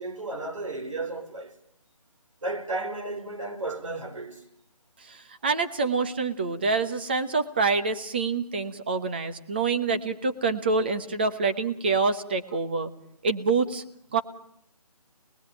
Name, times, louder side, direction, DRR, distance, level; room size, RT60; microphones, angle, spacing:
voice 1, 0.0-1.5 2.4-4.4, right 2 dB, 55° right, 4.7 m, -33 dB
voice 2, 5.0-12.9 13.2-13.8 14.1-14.2, right 4 dB, 15° right, 1.0 m, -26 dB
28.0 x 21.0 x 9.0 m
figure-of-eight pair, 175°, 20 cm